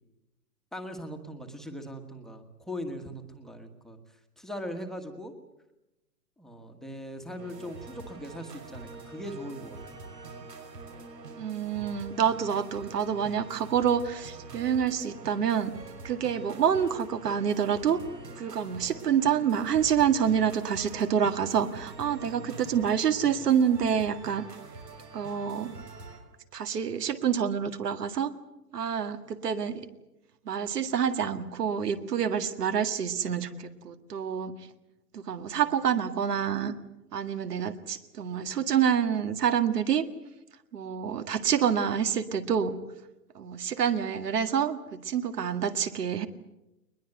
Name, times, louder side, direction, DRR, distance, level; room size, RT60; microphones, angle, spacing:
voice 1, 0.7-4.0 4.4-5.3 6.4-9.8, equal, ahead, 3 dB, 1.4 m, -40 dB
sound 1, 7.4-26.2, right 3 dB, 90° right, 6.1 m, -45 dB
voice 2, 11.4-15.7 16.0-18.0 18.4-24.5 25.1-25.7 26.5-28.3 28.7-29.9 30.5-34.5 35.1-36.7 37.1-40.1 40.7-42.8 43.4-46.3, right 8 dB, 70° right, 9 dB, 2.0 m, -27 dB
21.5 x 21.0 x 8.0 m, 0.94 s
hypercardioid pair, 145°, 49 cm